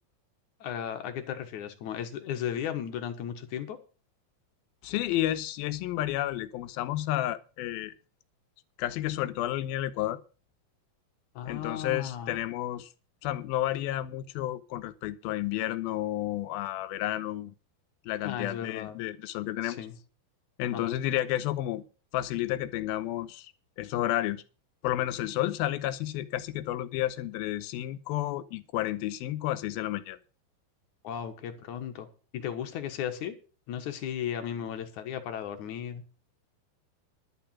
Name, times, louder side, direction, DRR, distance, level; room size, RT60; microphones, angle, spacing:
voice 1, 0.6-3.8 11.4-12.4 18.2-19.0 19.6-20.0 20.7-21.0 31.0-32.1 32.3-33.4 33.7-36.0, left 9 dB, 60° left, 2.4 m, -35 dB
voice 2, 4.8-7.9 8.8-10.2 11.5-12.9 13.2-17.6 18.1-19.8 20.6-21.8 22.1-23.5 23.8-24.4 24.8-30.2, left 14 dB, 80° left, 2.6 m, -31 dB
12.0 x 6.9 x 7.3 m
omnidirectional pair, 4.4 m